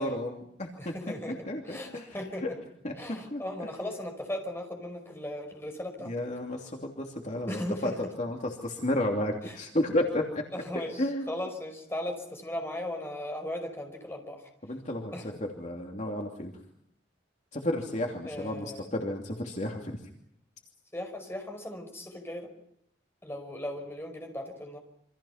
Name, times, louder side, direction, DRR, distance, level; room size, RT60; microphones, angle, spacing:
voice 1, 0.0-0.9 1.5-2.1 2.4-2.5 2.8-2.9 3.3-3.4 6.0-10.4 10.7-11.3 14.6-15.1 15.4-16.5 17.5-20.0, left 1 dB, 40° left, 1 dB, 2.9 m, -32 dB
voice 2, 0.8-1.4 1.6-2.6 3.0-6.1 7.5-8.0 9.4-9.6 10.5-14.5 15.1-15.3 18.2-18.9 20.9-22.5 23.2-24.8, left 1 dB, 15° left, 4 dB, 5.4 m, -37 dB
28.0 x 26.0 x 5.8 m, 0.72 s
head